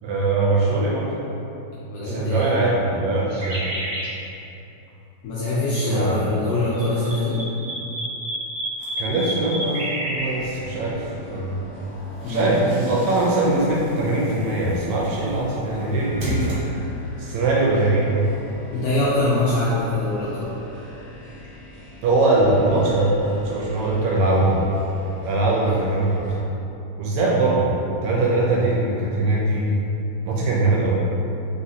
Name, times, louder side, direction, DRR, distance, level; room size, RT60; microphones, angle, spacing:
voice 1, 0.0-1.2 2.0-3.7 5.8-6.3 9.0-11.6 12.3-16.6 17.2-18.3 22.0-24.6 25.3-26.2 27.0-29.8 30.2-31.0, right 2 dB, 80° right, -4 dB, 1.8 m, -21 dB
voice 2, 1.9-2.5 5.2-7.4 12.2-12.5 18.7-20.6 25.4-25.8, left 2 dB, 80° left, -9 dB, 1.5 m, -24 dB
sound 1, 3.3-4.1 6.5-10.2, right 1 dB, 45° right, 1.2 m, -30 dB
sound 2, 8.8-9.9 11.8-17.2, left 1 dB, 60° right, 1.5 m, -36 dB
sound 3, 10.1-26.4, left 1 dB, 35° left, 0.7 m, -41 dB
4.1 x 3.8 x 2.7 m, 2.9 s
omnidirectional pair, 3.5 m